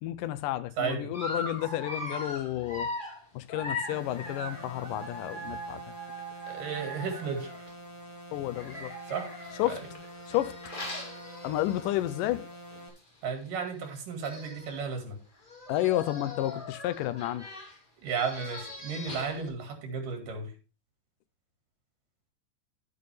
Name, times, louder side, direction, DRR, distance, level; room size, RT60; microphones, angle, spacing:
voice 1, 0.0-2.9 3.3-5.9 8.3-8.9 9.6-9.8 10.3-10.6 11.4-12.5 15.7-17.4, left 14 dB, 85° left, 2.4 m, -31 dB
voice 2, 0.8-1.2 6.5-7.7 9.1-9.3 9.7-9.9 13.2-15.2 18.0-20.5, right 5 dB, 90° right, 3.8 m, -34 dB
Dog, 1.1-7.7 8.5-12.1 12.5-12.7 13.0-13.1 13.9-14.0 14.2-14.8 15.4-19.5, left 1 dB, 20° left, 2.0 m, -40 dB
sound 1, 3.9-12.9, equal, 35° left, 2.4 m, -47 dB
11.0 x 8.7 x 3.4 m
omnidirectional pair, 3.7 m